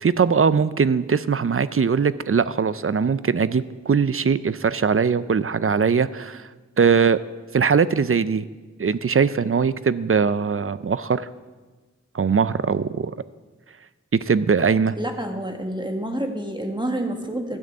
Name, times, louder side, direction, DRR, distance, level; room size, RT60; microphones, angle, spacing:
voice 1, 0.0-6.5 6.8-7.2 7.5-8.4 8.8-11.3 12.1-13.1 14.2-15.0, right 6 dB, 45° right, 15 dB, 0.5 m, -21 dB
voice 2, 15.0-17.6, right 1 dB, 15° right, 4 dB, 1.6 m, -28 dB
12.5 x 6.4 x 8.6 m, 1.3 s
wide cardioid pair, 45°, 30 cm